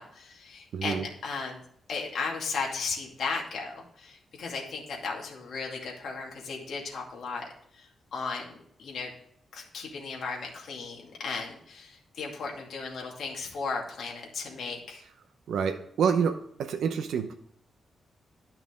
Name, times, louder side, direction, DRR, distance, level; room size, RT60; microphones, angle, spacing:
voice 1, 0.0-1.6 1.9-7.5 7.7-9.1 9.5-15.0, left 4 dB, 60° left, -1 dB, 2.3 m, -36 dB
voice 2, 0.7-1.1 15.5-17.4, right 6 dB, 85° right, 6 dB, 0.8 m, -28 dB
11.0 x 5.9 x 3.7 m, 0.66 s
wide cardioid pair, 150°, 0 cm